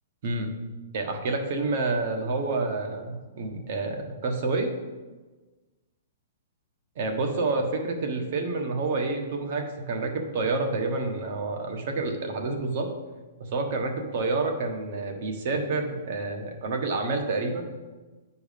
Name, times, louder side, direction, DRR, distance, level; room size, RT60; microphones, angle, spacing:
voice 1, 0.9-4.7 7.0-12.9 13.4-17.6, right 3 dB, 40° right, 4 dB, 1.2 m, -28 dB
9.4 x 4.7 x 5.2 m, 1.3 s
hypercardioid pair, 170°, 0 cm